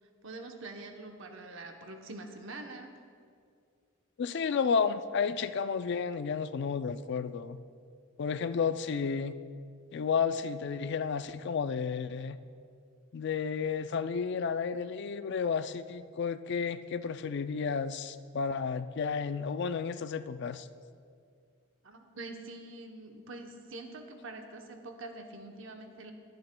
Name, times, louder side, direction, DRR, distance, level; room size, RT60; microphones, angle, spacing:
voice 1, 0.2-2.9 21.8-26.1, right 2 dB, 65° right, 4 dB, 0.9 m, -45 dB
voice 2, 4.2-7.6 8.2-9.3 9.9-12.4 13.1-20.7, left 6 dB, 55° left, 12 dB, 0.4 m, -32 dB
21.5 x 7.9 x 2.2 m, 2.2 s
head